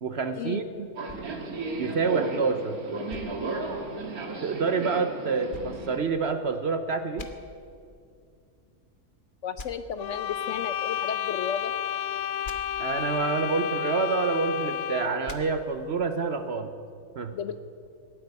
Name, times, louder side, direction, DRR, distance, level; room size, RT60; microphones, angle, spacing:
voice 1, 0.0-0.9 1.8-2.8 4.4-7.3 12.8-16.7 17.2-17.4, right 4 dB, 55° right, 9 dB, 0.9 m, -27 dB
Subway metro underground, 1.0-6.0, right 3 dB, 75° right, 2.0 m, -34 dB
sound 1, 1.1-2.5 3.1-4.3 5.5-6.7 7.2-7.3 9.6-9.7 12.4-12.6 15.2-15.4, left 3 dB, 40° left, 1.1 m, -45 dB
voice 2, 9.4-11.7 17.3-17.6, left 7 dB, 65° left, 12 dB, 0.9 m, -33 dB
sound 2, 10.0-15.3, left 10 dB, 85° left, 1.2 m, -31 dB
17.5 x 8.5 x 9.6 m, 2.4 s
omnidirectional pair, 1.6 m